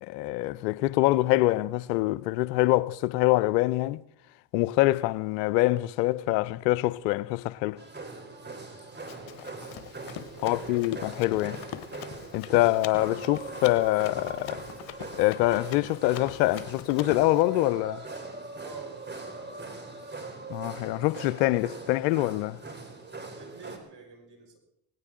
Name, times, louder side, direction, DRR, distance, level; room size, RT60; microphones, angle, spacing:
voice 1, 0.0-4.0 4.5-7.8 10.4-11.6 12.3-14.6 15.1-18.0 20.5-22.6, left 17 dB, 90° left, 0.6 m, -25 dB
sound 1, 7.8-23.8, right 3 dB, 20° right, 3.8 m, -41 dB
Run, 9.1-17.4, left 12 dB, 70° left, 1.2 m, -43 dB
voice 2, 10.3-11.0 18.6-19.8 23.3-24.6, right 5 dB, 55° right, 5.9 m, -47 dB
18.5 x 17.0 x 3.7 m
hypercardioid pair, 55°, 48 cm